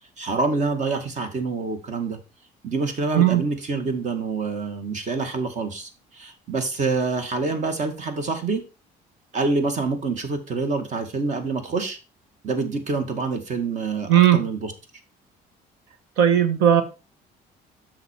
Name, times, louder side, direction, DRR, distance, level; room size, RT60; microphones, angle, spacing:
voice 1, 0.2-2.2 2.6-8.6 9.3-12.0 12.4-14.7, right 3 dB, 45° right, 2.1 m, -26 dB
voice 2, 14.1-14.4 16.2-16.8, right 10 dB, 90° right, 1.4 m, -16 dB
8.1 x 6.2 x 4.6 m
cardioid pair, 110°, 17 cm